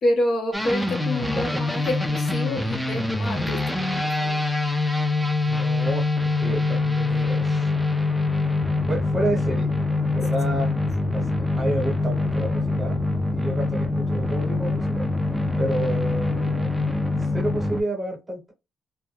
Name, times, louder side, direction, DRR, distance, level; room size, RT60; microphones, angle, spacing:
voice 1, 0.0-4.4, left 1 dB, 55° left, 0.9 m, -28 dB
sound 1, 0.5-17.8, left 2 dB, 10° left, 0.4 m, -24 dB
voice 2, 5.5-6.1 6.4-7.7 8.9-9.7 10.0-10.7 11.1-11.3 11.6-13.0 13.3-15.1 15.6-16.7 17.3-18.5, right 1 dB, 20° right, 1.0 m, -30 dB
2.2 x 2.1 x 3.1 m
cardioid pair, 90°, 0 cm